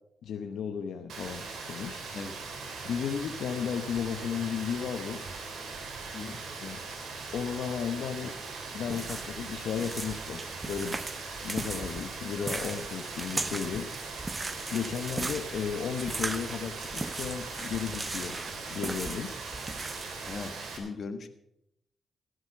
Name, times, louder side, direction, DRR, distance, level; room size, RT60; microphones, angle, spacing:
voice 1, 0.2-2.0 2.8-5.2 6.6-6.8 7.3-8.3 8.7-11.0 11.4-13.9 14.7-18.4 18.7-19.3, left 7 dB, 80° left, 6 dB, 0.9 m, -34 dB
Rain, 1.1-20.8, right 4 dB, 80° right, 3.4 m, -40 dB
sound 1, 8.9-20.5, right 3 dB, 30° right, 0.8 m, -38 dB
voice 2, 20.3-21.3, left 4 dB, 60° left, 9 dB, 1.5 m, -39 dB
16.0 x 8.0 x 6.7 m, 0.81 s
supercardioid pair, 55°, 0 cm